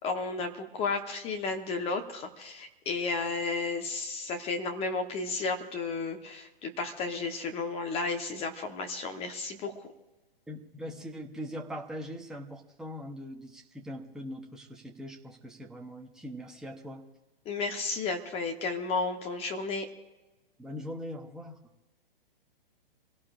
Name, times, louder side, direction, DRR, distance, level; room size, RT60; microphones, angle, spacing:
voice 1, 0.0-9.8 17.4-19.9, left 4 dB, 20° left, 4 dB, 1.2 m, -33 dB
voice 2, 10.5-17.1 20.6-21.6, equal, ahead, 1 dB, 1.0 m, -41 dB
27.5 x 17.0 x 2.5 m, 1.1 s
figure-of-eight pair, 125°, 30 cm